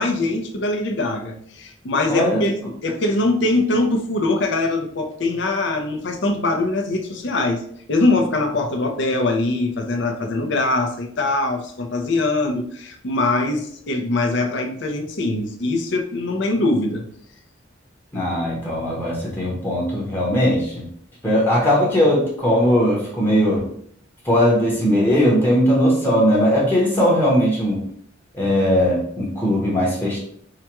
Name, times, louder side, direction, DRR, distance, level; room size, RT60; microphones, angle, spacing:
voice 1, 0.0-7.6 7.9-17.0, left 2 dB, 65° left, 4 dB, 0.6 m, -22 dB
voice 2, 2.1-2.5 18.1-20.8 21.2-23.7 24.2-27.8 28.3-30.2, equal, 10° left, -4 dB, 0.9 m, -19 dB
4.8 x 2.2 x 2.9 m, 0.64 s
head